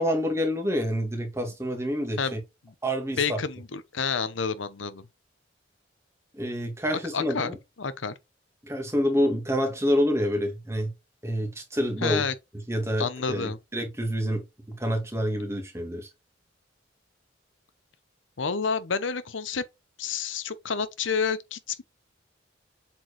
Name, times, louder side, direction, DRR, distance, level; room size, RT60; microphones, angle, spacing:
voice 1, 0.0-2.4 2.8-3.4 6.3-7.6 8.6-10.9 11.2-12.2 12.7-14.4 14.7-16.1, equal, 15° right, 1.9 m, -27 dB
voice 2, 3.2-5.0 7.1-7.5 7.8-8.1 12.0-12.3 13.0-13.6 18.4-19.6 20.0-21.8, left 5 dB, 90° left, 0.8 m, -29 dB
7.7 x 4.6 x 3.1 m
head